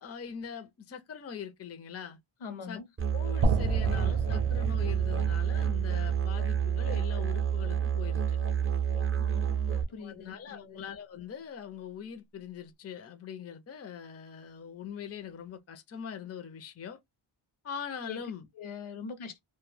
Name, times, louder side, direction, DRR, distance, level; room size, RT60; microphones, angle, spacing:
voice 1, 0.0-2.2 2.7-2.8 3.1-8.4 9.7-17.0 17.6-18.5, left 7 dB, 30° left, 0.4 m, -42 dB
voice 2, 2.4-2.8 9.2-10.8 18.0-18.2 18.6-19.4, left 5 dB, 75° left, 0.7 m, -43 dB
Musical instrument, 3.0-9.8, right 8 dB, 30° right, 0.5 m, -29 dB
sound 1, 3.4-7.5, right 3 dB, 85° right, 0.6 m, -32 dB
2.1 x 2.0 x 3.1 m
wide cardioid pair, 90°, 49 cm